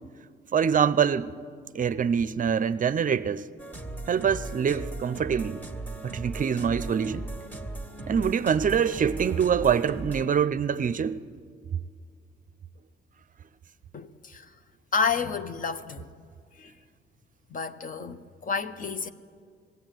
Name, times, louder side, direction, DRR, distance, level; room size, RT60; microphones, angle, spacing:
voice 1, 0.5-1.3 1.7-3.5 4.1-5.6 6.0-7.2 8.1-11.2, right 7 dB, 40° right, 0.6 m, -25 dB
sound 1, 3.6-10.3, right 2 dB, 10° left, 2.0 m, -38 dB
voice 2, 13.9-14.4 14.9-16.1 16.6-16.7 17.5-19.1, left 5 dB, 45° left, 1.1 m, -30 dB
20.5 x 16.0 x 9.2 m
cardioid pair, 90°, 20 cm